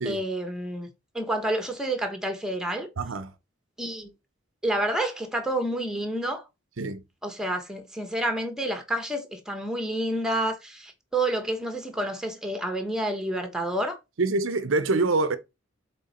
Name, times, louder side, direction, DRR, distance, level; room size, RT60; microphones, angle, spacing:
voice 1, 0.0-0.9 1.1-2.9 3.8-4.1 4.6-6.4 7.2-14.0, right 1 dB, 5° right, 1.2 m, -29 dB
voice 2, 3.0-3.3 6.8-7.0 14.2-15.4, right 3 dB, 75° right, 0.7 m, -25 dB
7.6 x 3.8 x 4.2 m
head